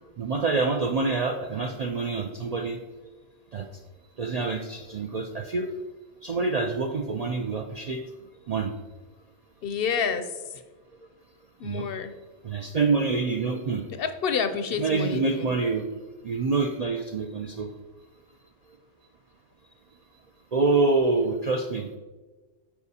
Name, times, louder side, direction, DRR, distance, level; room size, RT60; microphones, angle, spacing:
voice 1, 0.2-2.8 3.5-3.7 4.2-5.7 6.2-8.0 8.5-8.7 11.6-11.9 12.4-13.8 14.8-15.9 16.2-17.7 20.5-21.9, right 3 dB, 55° right, 4 dB, 0.4 m, -26 dB
voice 2, 9.6-10.6 11.6-12.1 13.9-15.5, left 6 dB, 65° left, 10 dB, 0.7 m, -29 dB
13.0 x 4.8 x 2.8 m, 1.3 s
omnidirectional pair, 1.2 m